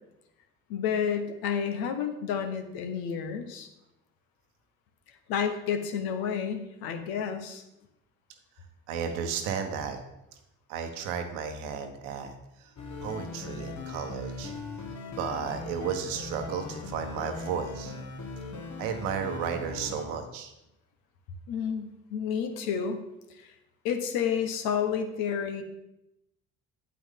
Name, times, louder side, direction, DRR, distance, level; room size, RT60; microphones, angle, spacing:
voice 1, 0.7-3.7 5.3-7.6 21.5-23.0 23.4-23.5 23.8-25.6, left 7 dB, 70° left, 6 dB, 1.2 m, -30 dB
voice 2, 8.9-10.0 10.7-12.7 13.0-14.5 15.1-17.9 18.8-20.5, right 7 dB, 80° right, 6 dB, 1.1 m, -33 dB
sound 1, 12.8-20.1, left 3 dB, 50° left, 1.5 m, -39 dB
8.5 x 8.1 x 3.7 m, 0.88 s
hypercardioid pair, 55°, 37 cm